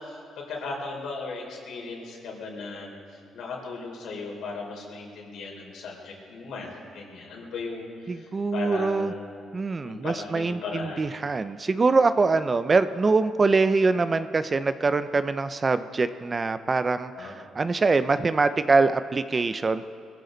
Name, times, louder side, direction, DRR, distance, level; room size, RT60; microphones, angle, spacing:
voice 1, 0.0-3.0 3.3-9.4 9.8-11.0 17.1-17.3, left 3 dB, 75° left, -1 dB, 4.2 m, -37 dB
voice 2, 8.1-9.1 9.5-19.9, right 3 dB, 30° right, 12 dB, 0.6 m, -24 dB
22.0 x 14.5 x 4.0 m, 2.5 s
cardioid pair, 90°, 0 cm